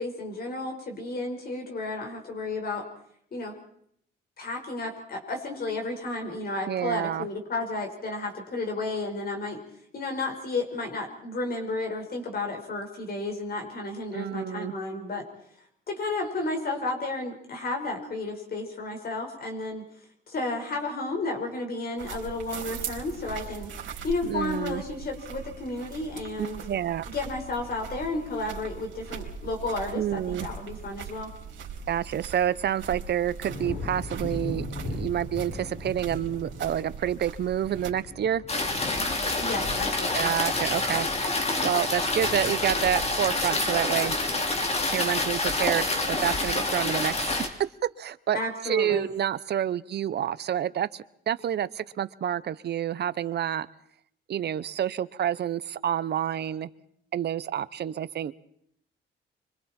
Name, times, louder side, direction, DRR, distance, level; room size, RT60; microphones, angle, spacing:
voice 1, 0.0-2.9 3.3-3.5 4.4-9.6 9.9-15.3 15.9-19.9 20.3-23.7 24.0-26.6 27.1-31.3 39.4-40.3 48.3-49.1, left 2 dB, 50° left, 3 dB, 4.9 m, -32 dB
voice 2, 6.7-7.3 14.1-14.7 24.2-24.8 26.4-27.0 29.9-30.5 31.9-38.4 40.1-41.1 41.6-44.2 44.9-47.5 48.0-53.7 54.3-56.7 57.1-58.3, right 10 dB, 55° right, 15 dB, 1.0 m, -28 dB
sound 1, 22.0-37.9, right 7 dB, 75° right, 4.1 m, -41 dB
sound 2, 33.4-44.7 45.1-45.6, left 2 dB, 80° left, 6.0 m, -40 dB
sound 3, 38.5-47.5, left 2 dB, 30° left, 3.3 m, -27 dB
25.5 x 25.0 x 4.4 m, 0.69 s
cardioid pair, 90°, 20 cm